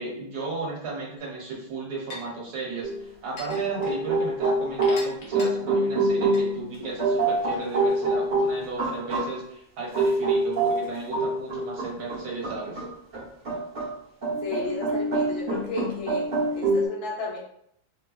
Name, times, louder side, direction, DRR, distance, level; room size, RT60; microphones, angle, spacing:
voice 1, 0.0-12.8, right 3 dB, 60° right, -2 dB, 1.3 m, -34 dB
sound 1, 1.2-1.3 2.1-2.2 3.4-3.9 4.8-5.5 6.3-6.4, left 3 dB, 60° left, 1.3 m, -39 dB
sound 2, 2.8-3.0 3.5-9.3 9.9-13.9 14.2-16.9, right 2 dB, 45° right, 0.6 m, -26 dB
voice 2, 14.4-16.3 16.5-17.4, left 4 dB, 90° left, -3 dB, 1.6 m, -33 dB
4.5 x 2.2 x 2.3 m, 0.72 s
omnidirectional pair, 2.1 m